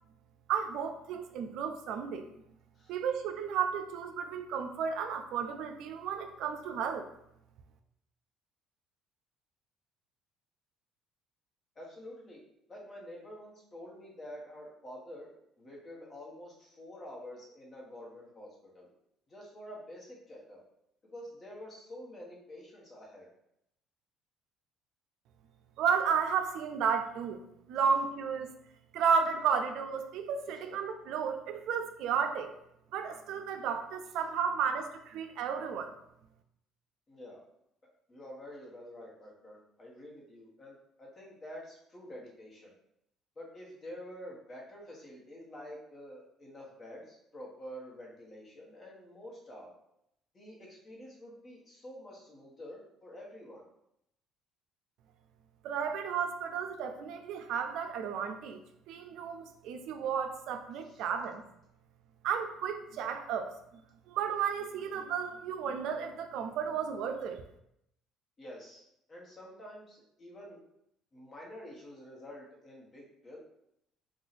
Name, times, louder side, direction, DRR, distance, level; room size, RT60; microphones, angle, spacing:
voice 1, 0.5-2.3 2.9-7.1 25.8-27.4 27.7-28.5 28.9-32.5 32.9-35.9 55.6-58.6 58.9-61.4 62.2-63.8 64.1-67.4, right 7 dB, 70° right, 6 dB, 0.3 m, -33 dB
voice 2, 11.7-12.4 12.7-18.9 19.3-20.6 21.0-23.3 37.1-37.4 38.1-42.7 43.4-49.7 50.3-53.6 60.8-61.0 68.4-70.6 71.1-73.4, equal, 30° left, -3 dB, 1.1 m, -48 dB
2.7 x 2.3 x 4.0 m, 0.78 s
cardioid pair, 115°, 0 cm